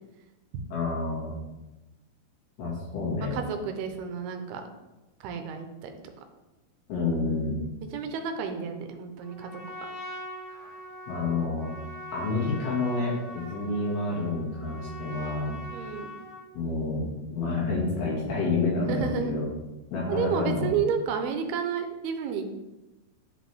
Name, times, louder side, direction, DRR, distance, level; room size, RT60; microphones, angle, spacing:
voice 1, 0.7-1.3 2.6-3.3 6.9-7.6 11.1-11.7 12.1-15.5 16.5-19.5 19.9-20.7, left 3 dB, 75° left, -4 dB, 4.0 m, -29 dB
voice 2, 3.3-4.6 5.2-5.9 7.9-9.5 15.7-16.2 18.9-19.4 20.1-22.5, right 6 dB, 85° right, 6 dB, 2.6 m, -31 dB
Trumpet, 9.2-16.5, equal, 15° left, 2.3 m, -42 dB
10.5 x 5.2 x 3.5 m, 1.0 s
omnidirectional pair, 4.6 m